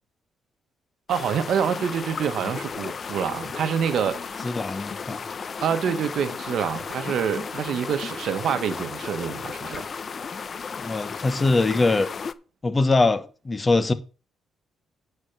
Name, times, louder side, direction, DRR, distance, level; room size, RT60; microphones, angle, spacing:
sound 1, 1.1-12.3, left 5 dB, 45° left, 0.6 m, -34 dB
voice 1, 1.1-4.5 5.6-9.9, right 8 dB, 70° right, 1.1 m, -26 dB
voice 2, 4.4-5.2 10.8-12.1 12.6-13.9, left 3 dB, 25° left, 1.2 m, -22 dB
10.0 x 4.6 x 7.1 m
cardioid pair, 90°, 0 cm